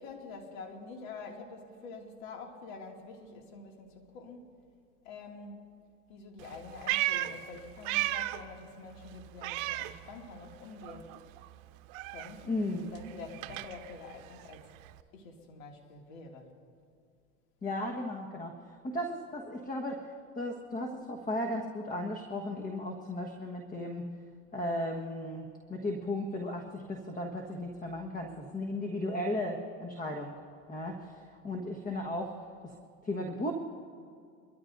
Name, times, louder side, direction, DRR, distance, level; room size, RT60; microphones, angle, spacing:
voice 1, 0.0-4.6 5.0-5.6 6.1-11.2 12.1-14.7 15.1-16.6, left 4 dB, 75° left, 1 dB, 2.4 m, -47 dB
Meow, 6.4-8.5 8.8-10.6 10.8-15.0, right 17 dB, 65° right, 0.8 m, -36 dB
voice 2, 12.5-12.9 17.6-18.6 18.8-24.1 24.5-30.4 30.7-32.3 33.0-33.5, left 1 dB, 20° left, 2 dB, 1.4 m, -35 dB
24.0 x 13.5 x 2.6 m, 2.3 s
hypercardioid pair, 100°, 41 cm